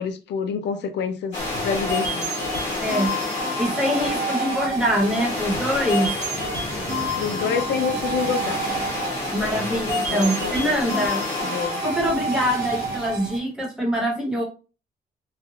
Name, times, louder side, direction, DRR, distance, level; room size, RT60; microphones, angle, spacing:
voice 1, 0.0-1.4 1.6-2.4 7.2-8.6 10.1-10.7 11.4-11.8, left 6 dB, 80° left, 0.4 m, -27 dB
sound 1, 1.3-13.3, left 2 dB, 40° left, 1.5 m, -30 dB
sound 2, 1.4-13.4, right 2 dB, 65° right, 0.9 m, -30 dB
voice 2, 2.8-3.1 3.6-6.1 9.3-11.2 11.8-14.4, equal, 5° right, 1.1 m, -24 dB
3.2 x 2.3 x 2.3 m
wide cardioid pair, 170°, 18 cm